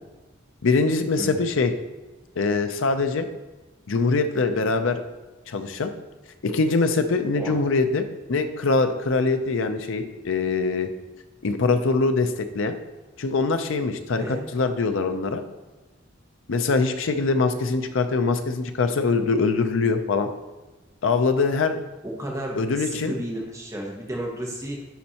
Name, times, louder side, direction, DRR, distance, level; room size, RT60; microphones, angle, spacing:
voice 1, 0.6-1.7 2.4-3.3 3.9-5.0 5.5-5.9 6.4-8.0 8.3-10.9 11.4-12.7 13.2-15.4 16.5-20.3 21.0-21.8 22.6-23.1, left 3 dB, 85° left, 8 dB, 0.6 m, -23 dB
voice 2, 22.0-24.8, right 1 dB, 15° right, -2 dB, 1.0 m, -32 dB
10.0 x 4.2 x 2.9 m, 1.2 s
head